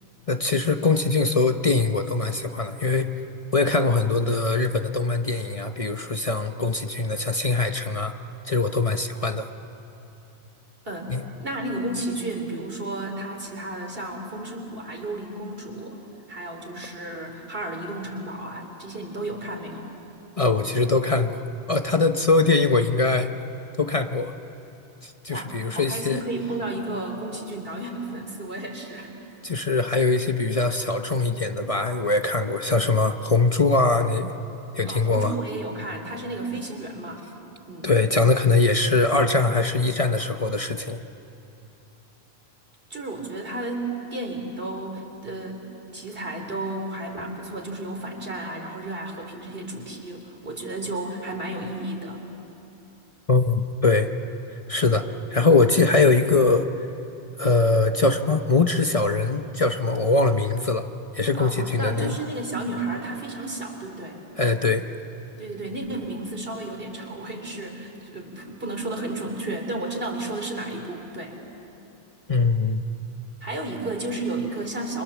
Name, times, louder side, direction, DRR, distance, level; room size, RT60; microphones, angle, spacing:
voice 1, 0.3-3.2 3.5-8.1 8.4-9.5 11.1-11.2 20.4-21.4 21.7-23.3 23.8-24.3 25.0-26.2 29.4-34.3 34.7-35.3 37.8-41.0 53.3-54.1 54.7-56.7 57.4-60.9 61.1-62.2 64.4-64.9 72.3-72.8, left 3 dB, 35° left, 6 dB, 0.9 m, -22 dB
voice 2, 10.9-16.0 16.3-19.9 20.6-20.7 25.3-29.1 34.8-37.2 37.7-37.9 42.9-45.7 45.9-52.2 61.3-64.2 65.4-71.4 73.4-75.0, right 2 dB, 65° right, 2 dB, 3.8 m, -32 dB
30.0 x 26.5 x 7.3 m, 2.9 s
omnidirectional pair, 1.0 m